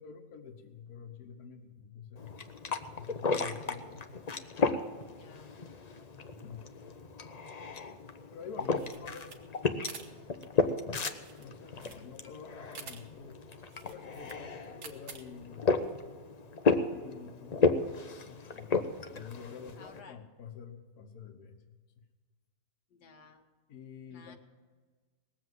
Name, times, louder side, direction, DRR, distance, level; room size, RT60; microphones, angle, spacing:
voice 1, 0.0-2.4 3.0-4.0 6.4-6.6 8.3-9.9 11.4-13.4 13.8-15.7 16.9-21.6 22.0-22.1 23.7-24.4, left 6 dB, 70° left, 5 dB, 1.6 m, -48 dB
sound 1, 2.2-20.0, left 4 dB, 45° left, 0.5 m, -34 dB
voice 2, 5.2-5.5 8.6-8.7 19.8-20.2 22.9-23.4 24.1-24.4, left 5 dB, 90° left, 4 dB, 1.7 m, -54 dB
sound 2, 8.6-15.9, right 5 dB, 75° right, 1.7 m, -51 dB
19.0 x 7.7 x 7.8 m, 1.4 s
omnidirectional pair, 1.7 m